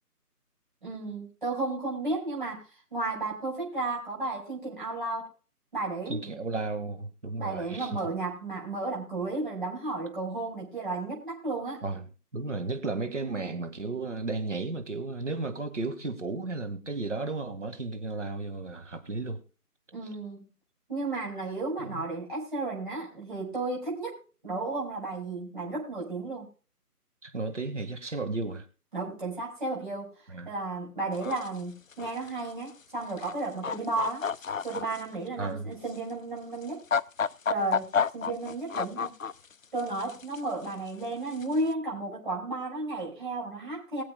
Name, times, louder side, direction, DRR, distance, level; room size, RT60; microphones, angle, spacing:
voice 1, 0.8-2.6 2.9-5.3 5.7-6.2 7.4-11.8 19.9-20.5 20.9-26.5 28.9-30.1 30.5-34.2 34.6-36.8 37.5-39.1 39.7-44.0, right 2 dB, 30° right, 5.8 m, -33 dB
voice 2, 6.1-8.1 11.8-12.0 12.3-19.4 21.8-22.0 27.2-28.6 30.3-30.5 35.4-35.7, right 3 dB, 50° right, 2.1 m, -34 dB
sound 1, 31.2-31.5 31.9-32.3 33.1-33.3 33.6-35.0 35.9-36.0 36.6-39.5 39.8-40.4 41.3-41.6, left 6 dB, 60° left, 0.5 m, -30 dB
23.0 x 7.7 x 2.3 m
figure-of-eight pair, 180°, 47 cm